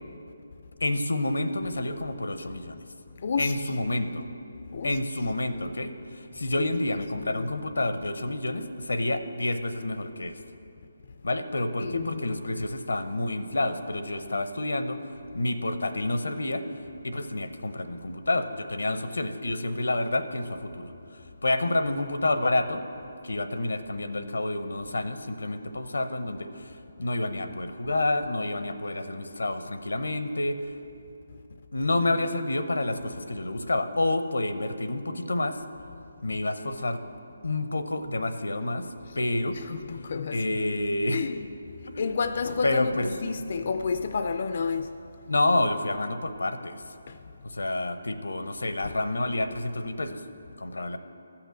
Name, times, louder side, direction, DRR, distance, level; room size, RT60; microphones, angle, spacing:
voice 1, 0.8-2.8 3.4-4.3 4.8-10.4 11.2-16.6 17.0-20.9 21.4-22.8 23.2-30.8 31.7-35.6 36.2-37.1 37.4-39.6 40.3-41.3 41.9-42.0 42.6-43.1 45.3-46.8 47.4-50.2 50.6-51.0, left 2 dB, 90° left, 0.7 m, -29 dB
voice 2, 3.2-3.5 4.7-5.0 6.6-6.7 7.2-7.5 11.8-12.6 39.6-40.4 41.1-41.4 42.0-45.0 47.1-47.2, left 5 dB, 55° left, 0.4 m, -30 dB
13.5 x 5.9 x 7.7 m
hypercardioid pair, 160°, 0 cm